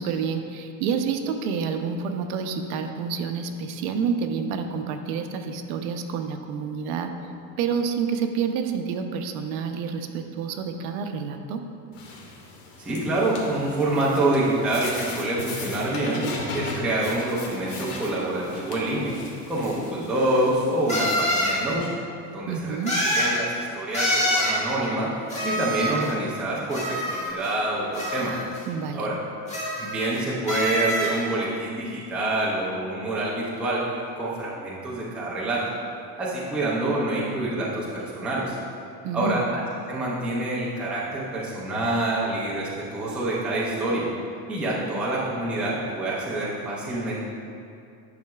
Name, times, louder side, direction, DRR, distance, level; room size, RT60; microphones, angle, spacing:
voice 1, 0.0-7.1 7.6-11.6 22.5-23.0 28.7-29.1 39.0-39.5, right 6 dB, 75° right, 6 dB, 0.7 m, -28 dB
sound 1, 11.9-21.8, left 3 dB, 75° left, 1.4 m, -38 dB
voice 2, 12.8-19.1 19.5-21.9 22.3-28.3 28.9-29.2 29.8-33.8 34.2-35.6 36.2-38.6 39.1-39.6 39.9-44.1 44.5-47.2, right 1 dB, 5° right, -6 dB, 0.3 m, -26 dB
sound 2, 19.6-19.7 20.9-21.6 22.9-23.4 23.9-24.6 25.3-26.1 26.7-27.5 27.9-28.6 29.5-30.2 30.5-31.2, equal, 15° left, 1.1 m, -25 dB
10.5 x 5.7 x 2.3 m, 2.5 s
cardioid pair, 175°, 44 cm